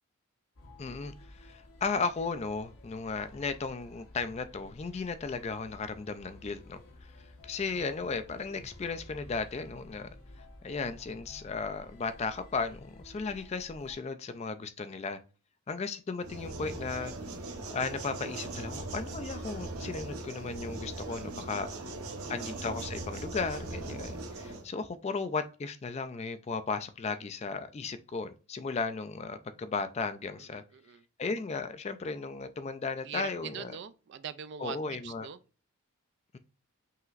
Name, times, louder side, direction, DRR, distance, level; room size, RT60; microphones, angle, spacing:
sound 1, 0.6-13.9, left 1 dB, 75° left, 1.1 m, -52 dB
voice 1, 0.8-15.2 15.7-17.1 17.7-21.7 22.3-30.6 31.2-33.7 34.6-35.3 36.3-36.4, left 4 dB, 30° left, 0.3 m, -35 dB
sound 2, 16.2-24.6, right 2 dB, 75° right, 0.9 m, -40 dB
voice 2, 21.3-22.4 30.5-31.0 33.0-34.8 35.0-35.4, right 8 dB, 50° right, 0.3 m, -43 dB
5.6 x 2.9 x 2.4 m
head